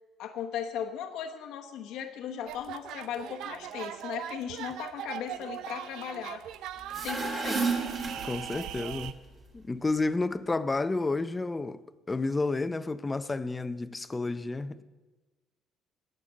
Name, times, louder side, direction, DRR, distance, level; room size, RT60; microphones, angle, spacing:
voice 1, 0.2-6.5 7.0-7.7, left 9 dB, 70° left, 1.0 m, -37 dB
sound 1, 2.4-9.1, right 11 dB, 70° right, 0.5 m, -40 dB
sound 2, 6.8-8.9, right 4 dB, 30° right, 2.3 m, -32 dB
voice 2, 8.2-9.2 9.5-11.8 12.1-14.8, left 3 dB, 15° left, 0.5 m, -30 dB
18.5 x 6.7 x 7.4 m
cardioid pair, 145°, 0 cm